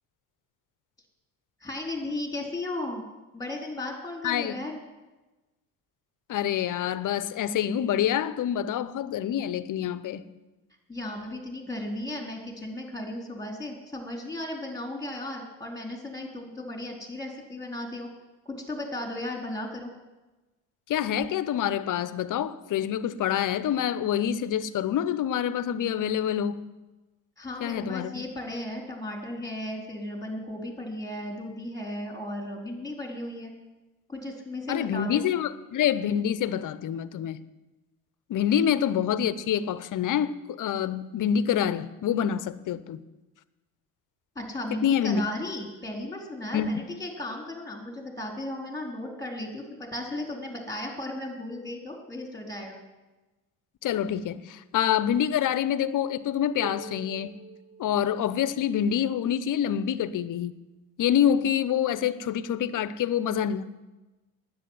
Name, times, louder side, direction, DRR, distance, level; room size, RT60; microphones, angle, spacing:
voice 1, 1.6-3.0 3.3-4.8 10.9-18.1 18.4-19.9 27.4-33.5 34.1-35.2 44.4-52.8, left 1 dB, 10° left, 1 dB, 4.1 m, -35 dB
voice 2, 4.2-4.6 6.3-10.3 20.9-26.6 27.6-28.2 34.7-37.4 38.3-43.0 44.7-45.2 46.5-46.7 53.8-57.4 57.8-60.5 61.0-63.6, left 9 dB, 50° left, 16 dB, 0.9 m, -26 dB
sound 1, 56.6-58.6, right 5 dB, 20° right, 0.5 m, -44 dB
10.0 x 8.5 x 9.7 m, 1.1 s
hypercardioid pair, 70°, 42 cm